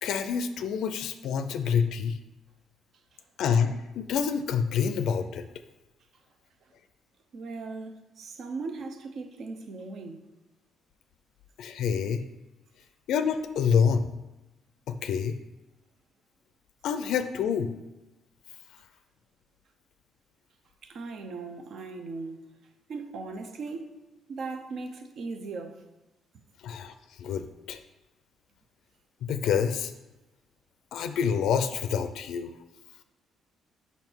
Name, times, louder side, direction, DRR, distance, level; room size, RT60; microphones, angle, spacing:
voice 1, 0.0-2.2 3.4-5.4 11.6-12.2 13.1-14.1 14.9-15.4 16.8-17.7 26.6-26.9 27.2-27.8 29.3-29.9 30.9-32.5, left 7 dB, 75° left, 0.4 m, -27 dB
voice 2, 7.3-10.2 20.8-22.4 22.9-24.0 24.3-25.8, right 3 dB, 60° right, 0.7 m, -38 dB
5.8 x 5.6 x 4.5 m
cardioid pair, 140°, 0 cm